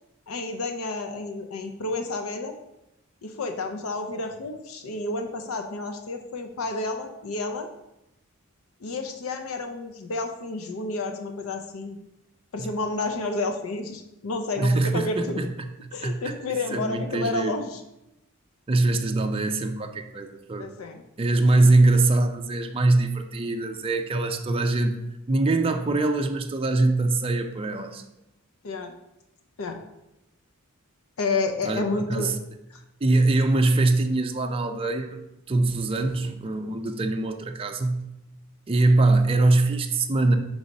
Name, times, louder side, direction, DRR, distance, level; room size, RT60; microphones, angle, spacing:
voice 1, 0.3-2.5 3.2-7.7 8.8-12.0 12.5-15.4 15.9-17.8 20.6-21.0 21.6-21.7 28.6-28.9 29.6-29.8 31.2-32.3 32.7-32.8, left 3 dB, 70° left, 6 dB, 0.5 m, -30 dB
voice 2, 14.6-15.7 16.0-16.3 16.7-17.5 18.7-20.7 21.2-25.0 25.3-28.0 31.6-32.4 33.0-35.2 35.5-38.0 38.7-40.4, right 2 dB, 25° right, 5 dB, 0.4 m, -23 dB
4.7 x 4.0 x 5.2 m, 0.90 s
head